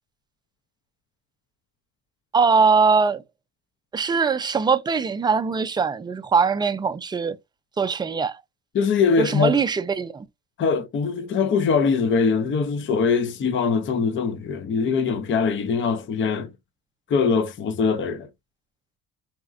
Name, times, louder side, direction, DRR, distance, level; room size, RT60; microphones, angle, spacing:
voice 1, 2.3-3.2 3.9-7.4 7.8-8.4 9.2-10.3, right 5 dB, 15° right, 0.3 m, -21 dB
voice 2, 8.7-9.6 10.6-16.5 17.1-18.3, left 5 dB, 35° left, 0.6 m, -22 dB
4.2 x 3.8 x 2.3 m
cardioid pair, 140°, 34 cm